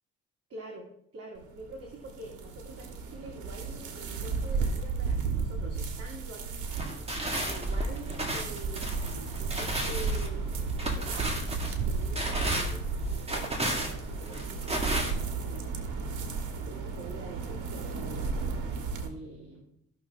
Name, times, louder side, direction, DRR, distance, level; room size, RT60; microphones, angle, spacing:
voice 1, 0.5-7.1 7.5-11.4 11.9-16.0 16.6-18.4 19.0-19.6, right 2 dB, 50° right, 0 dB, 2.2 m, -46 dB
sound 1, 1.4-19.1, right 4 dB, 80° right, 1.5 m, -34 dB
sound 2, 6.7-15.1, right 1 dB, 20° right, 2.0 m, -34 dB
15.0 x 6.2 x 3.6 m, 0.74 s
cardioid pair, 90°, 30 cm